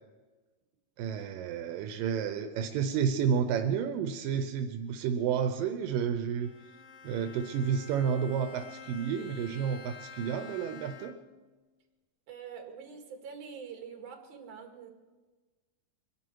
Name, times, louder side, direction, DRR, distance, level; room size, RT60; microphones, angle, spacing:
voice 1, 1.0-6.5 7.0-11.1, right 7 dB, 90° right, 6 dB, 2.5 m, -31 dB
Bowed string instrument, 6.4-11.4, left 6 dB, 80° left, 1.3 m, -49 dB
voice 2, 12.3-14.9, right 6 dB, 65° right, 3 dB, 3.3 m, -45 dB
24.0 x 11.0 x 4.7 m, 1.3 s
omnidirectional pair, 3.8 m